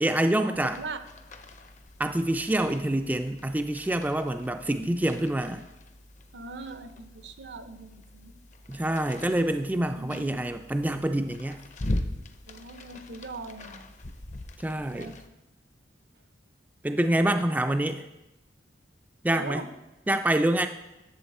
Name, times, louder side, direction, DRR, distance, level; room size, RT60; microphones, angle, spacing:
voice 1, 0.0-0.8 2.0-5.6 8.7-11.6 14.6-15.2 16.8-18.0 19.2-19.6 20.1-20.7, right 1 dB, 10° right, 6 dB, 0.3 m, -26 dB
sound 1, 0.5-15.3, left 1 dB, 40° left, 0.6 m, -41 dB
voice 2, 6.3-8.3 9.9-10.4 12.5-13.9 14.8-15.1 19.4-19.7, right 3 dB, 70° right, 10 dB, 0.7 m, -40 dB
11.5 x 7.2 x 4.2 m, 0.98 s
head